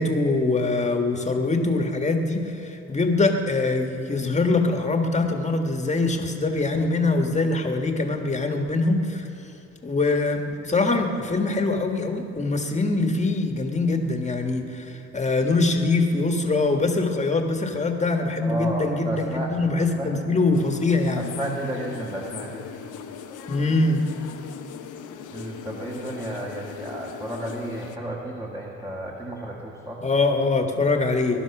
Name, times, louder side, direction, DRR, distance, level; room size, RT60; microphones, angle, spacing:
voice 1, 0.0-9.3 9.8-21.4 23.5-24.1 30.0-31.4, left 3 dB, 25° left, 4 dB, 1.7 m, -23 dB
voice 2, 18.4-20.1 21.2-22.7 25.3-30.0, right 1 dB, 15° right, -3 dB, 2.0 m, -32 dB
sound 1, 20.5-28.0, left 7 dB, 85° left, 1.1 m, -39 dB
20.5 x 11.5 x 6.1 m, 2.9 s
cardioid pair, 90°, 30 cm